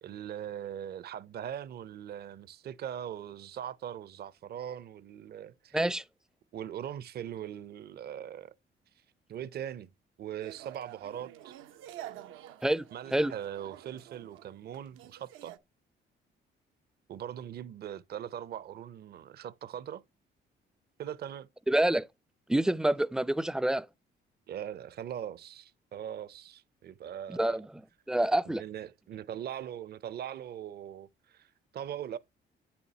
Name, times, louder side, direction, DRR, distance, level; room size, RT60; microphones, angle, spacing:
voice 1, 0.0-5.8 6.5-8.5 9.3-9.9 10.2-11.5 12.9-15.6 17.1-20.0 21.0-21.5 24.5-27.6 28.5-32.2, right 10 dB, 55° right, 0.5 m, -41 dB
voice 2, 5.7-6.0 12.6-13.3 21.7-22.1 22.5-23.9 27.3-27.7 28.1-28.6, right 1 dB, 5° right, 0.4 m, -27 dB
sound 1, 10.4-15.6, right 12 dB, 90° right, 0.7 m, -48 dB
8.3 x 7.0 x 2.8 m
cardioid pair, 90°, 20 cm